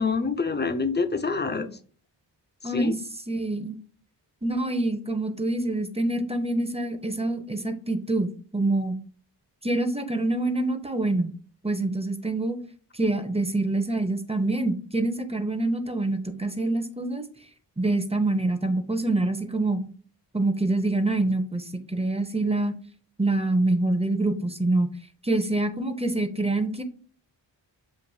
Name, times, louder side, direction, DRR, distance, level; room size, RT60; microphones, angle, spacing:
voice 1, 0.0-1.8 2.6-3.0, left 4 dB, 25° left, 0.6 m, -26 dB
voice 2, 2.6-2.9 3.3-3.8 4.4-8.9 9.6-11.3 11.6-12.6 12.9-17.3 17.8-19.8 20.3-21.7 21.9-22.7 23.2-24.9 25.2-26.8, right 2 dB, 15° right, 0.7 m, -26 dB
7.2 x 2.6 x 2.7 m
cardioid pair, 40°, 45 cm